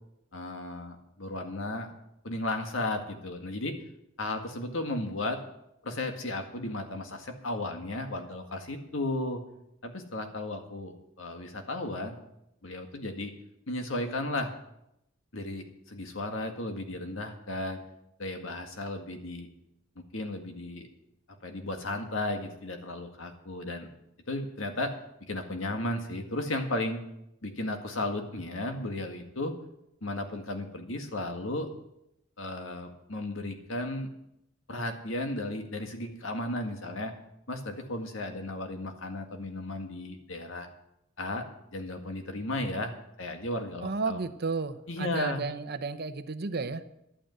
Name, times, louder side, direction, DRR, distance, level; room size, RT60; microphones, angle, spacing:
voice 1, 0.3-1.9 2.2-3.8 4.2-5.4 5.8-9.4 9.8-12.2 12.6-13.3 13.7-14.5 15.3-17.8 18.2-19.5 20.1-20.9 21.4-23.9 24.3-24.9 25.2-27.0 27.4-29.6 30.0-31.7 32.4-34.1 34.7-37.1 37.5-40.7 41.2-41.4 41.7-42.9 43.2-44.2 44.9-45.4, left 2 dB, 80° left, 5 dB, 1.9 m, -34 dB
voice 2, 43.8-46.8, right 4 dB, 55° right, 12 dB, 0.8 m, -33 dB
12.0 x 8.9 x 8.0 m, 0.82 s
head